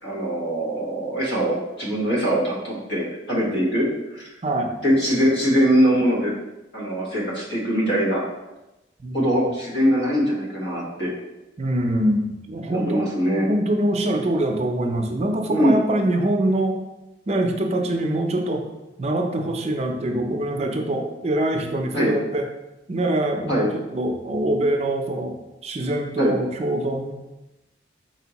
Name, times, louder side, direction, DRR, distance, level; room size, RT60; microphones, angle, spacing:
voice 1, 0.0-4.3 4.8-6.3 6.7-8.2 9.1-11.1 12.7-13.5 15.5-15.8 21.9-22.1 23.5-23.7 26.2-26.3, equal, 70° left, -5 dB, 1.4 m, -22 dB
voice 2, 9.0-9.5 11.6-13.0 13.4-16.8 17.3-18.7 19.0-22.4 22.9-25.3 25.6-27.1, right 1 dB, 35° right, 3 dB, 0.5 m, -24 dB
4.4 x 3.4 x 2.9 m, 0.99 s
head